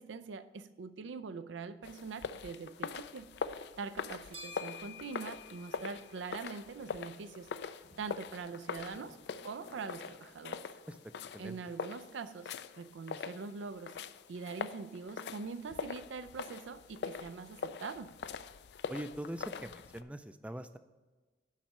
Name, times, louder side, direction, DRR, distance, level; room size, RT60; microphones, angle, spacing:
voice 1, 0.0-3.3 3.8-7.5 8.0-9.2 9.4-10.7 11.4-14.0 14.3-18.1, right 4 dB, 85° right, 11 dB, 0.4 m, -43 dB
sound 1, 1.8-20.0, left 5 dB, 65° left, 0.4 m, -43 dB
sound 2, 4.2-17.8, left 4 dB, 30° right, 0.8 m, -58 dB
sound 3, 5.8-10.7, right 2 dB, 60° right, 1.1 m, -62 dB
voice 2, 18.9-20.8, right 1 dB, 5° right, 11 dB, 0.3 m, -42 dB
7.4 x 5.4 x 7.1 m, 1.3 s
head